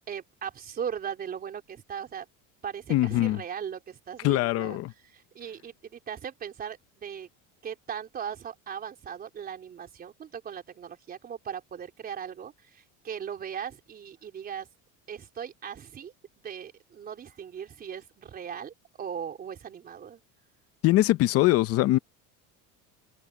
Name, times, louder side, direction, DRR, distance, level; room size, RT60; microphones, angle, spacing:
voice 1, 0.1-2.3 2.6-4.8 5.1-7.3 7.6-14.7 15.1-16.1 16.4-20.2, right 8 dB, 30° right, 4.1 m, -38 dB
voice 2, 2.9-3.4 4.2-4.9 20.8-22.0, left 16 dB, 45° left, 0.7 m, -22 dB
cardioid pair, 170°, 33 cm